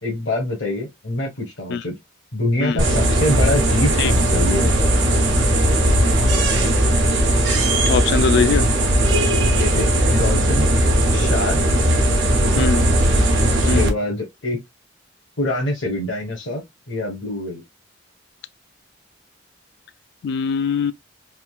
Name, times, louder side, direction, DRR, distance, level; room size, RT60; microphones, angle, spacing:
voice 1, 0.0-1.9 2.3-5.0 9.5-10.7 11.1-11.6 12.4-12.7 13.5-14.6 15.4-16.6 16.9-17.6, left 1 dB, 80° left, 1.1 m, -25 dB
sound 1, 2.8-13.9, right 1 dB, 75° right, 1.0 m, -18 dB
voice 2, 7.9-8.7 12.6-12.8 13.7-13.9 20.2-20.9, left 5 dB, 60° left, 0.3 m, -21 dB
3.6 x 2.5 x 2.3 m
head